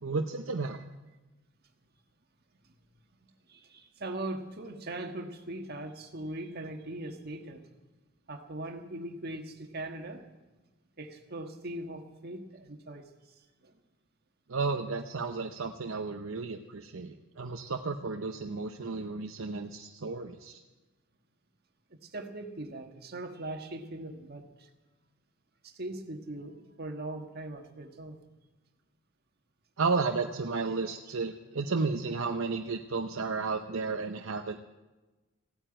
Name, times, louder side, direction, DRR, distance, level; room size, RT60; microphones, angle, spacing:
voice 1, 0.0-0.8 14.5-20.6 29.8-34.6, right 4 dB, 65° right, 4 dB, 0.7 m, -33 dB
voice 2, 3.5-7.7 8.3-10.2 11.0-13.8 22.0-24.7 25.6-28.2, right 1 dB, 50° right, 4 dB, 1.5 m, -40 dB
15.5 x 9.1 x 8.9 m, 1.1 s
head